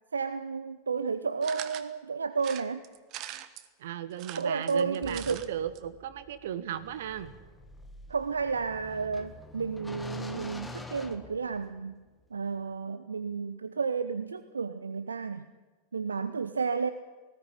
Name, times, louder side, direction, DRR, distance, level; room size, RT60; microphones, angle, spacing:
voice 1, 0.1-2.8 4.3-5.4 8.1-12.0 12.3-15.5 15.9-16.9, right 5 dB, 75° right, 12 dB, 0.7 m, -32 dB
sound 1, 1.4-1.9 2.4-3.7 4.1-5.5 5.8-5.9 6.1-6.2, right 13 dB, 40° right, 1.2 m, -42 dB
voice 2, 3.8-7.3, right 10 dB, 55° right, 13 dB, 1.4 m, -36 dB
sound 2, 5.0-12.0, left 2 dB, 10° left, 1.7 m, -46 dB
19.0 x 15.5 x 9.9 m, 1.3 s
figure-of-eight pair, 90°, 0 cm